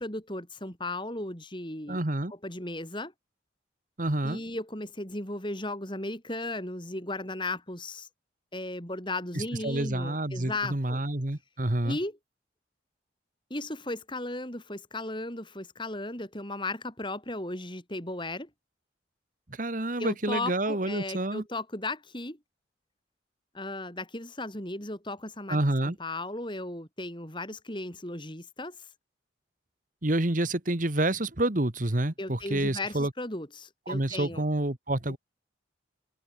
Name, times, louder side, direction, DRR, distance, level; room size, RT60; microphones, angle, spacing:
voice 1, 0.0-2.0 2.4-3.1 4.2-8.1 8.5-11.0 11.8-12.1 13.5-18.5 20.0-22.4 23.5-28.9 32.2-34.4, left 2 dB, 25° left, 5.2 m, -36 dB
voice 2, 1.9-2.3 4.0-4.4 9.3-12.0 19.5-21.4 25.5-26.0 30.0-33.1 33.9-35.2, right 1 dB, 40° right, 1.5 m, -28 dB
head